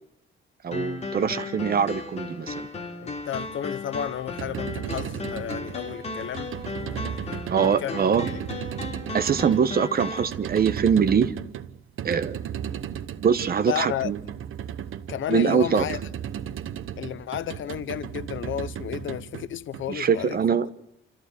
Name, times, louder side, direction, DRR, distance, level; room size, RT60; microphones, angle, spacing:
voice 1, 0.6-2.7 7.5-8.3 9.1-11.3 12.0-12.4 13.2-14.2 15.3-15.8 19.9-20.7, right 7 dB, 45° right, 1.1 m, -23 dB
sound 1, 0.7-10.3, left 3 dB, 30° left, 3.0 m, -35 dB
voice 2, 3.0-6.5 7.0-7.4 7.8-8.1 13.7-14.1 15.1-16.0 17.0-20.4, left 11 dB, 65° left, 0.8 m, -32 dB
sound 2, 4.2-20.3, right 9 dB, 80° right, 1.0 m, -35 dB
28.0 x 14.5 x 8.2 m
wide cardioid pair, 160°, 21 cm